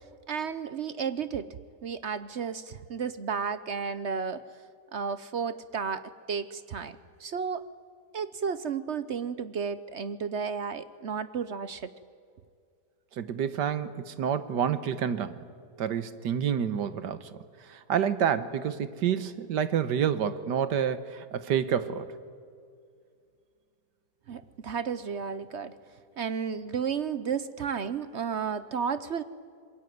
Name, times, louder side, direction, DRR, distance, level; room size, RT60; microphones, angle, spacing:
voice 1, 0.3-1.5 1.8-4.4 4.9-7.6 8.1-11.9 24.3-25.8 26.2-29.2, right 6 dB, 55° right, 14 dB, 0.8 m, -33 dB
voice 2, 13.2-15.4 15.8-22.1, right 8 dB, 80° right, 13 dB, 1.7 m, -28 dB
26.5 x 22.0 x 9.3 m, 2.2 s
omnidirectional pair, 1.8 m